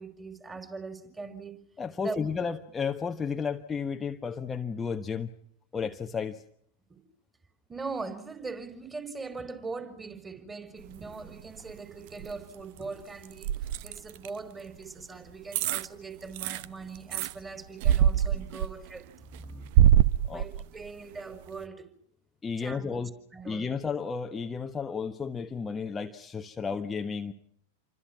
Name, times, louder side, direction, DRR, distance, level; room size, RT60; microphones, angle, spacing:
voice 1, 0.0-1.5 2.0-2.3 6.9-7.0 7.7-13.5 13.8-19.1 20.3-21.9 22.6-23.7, right 4 dB, 15° right, 4.8 m, -41 dB
voice 2, 1.8-5.3 5.7-6.4 19.5-19.7 20.3-20.5 22.4-23.1 23.4-27.3, left 5 dB, 15° left, 1.3 m, -33 dB
sound 1, 10.8-11.7 12.1-14.3 15.0-15.1 15.5-15.9 16.2-17.3 17.8-19.0 19.3-20.9 21.3-21.4, right 11 dB, 50° right, 0.9 m, -24 dB
29.0 x 25.0 x 6.1 m
figure-of-eight pair, 90°, 0 cm